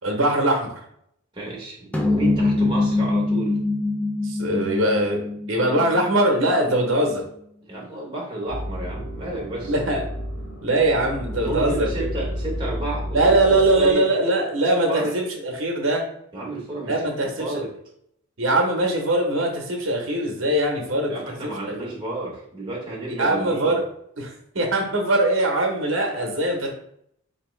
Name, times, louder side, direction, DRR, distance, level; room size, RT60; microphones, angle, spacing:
voice 1, 0.0-0.7 4.2-5.2 5.5-7.2 9.6-10.0 10.6-11.9 13.1-16.0 16.9-17.6 18.4-21.1 21.4-21.9 23.2-23.8 24.2-26.7, right 1 dB, 60° right, 1 dB, 0.9 m, -21 dB
voice 2, 1.3-3.6 7.7-9.7 11.4-14.0 14.9-15.1 16.3-16.9 17.2-17.7 21.1-23.8, right 2 dB, 20° right, -4 dB, 0.9 m, -31 dB
sound 1, 1.9-6.5, left 2 dB, 5° left, 0.3 m, -23 dB
sound 2, 8.5-13.9, equal, 60° left, 1.1 m, -31 dB
4.0 x 2.9 x 3.1 m, 0.70 s
head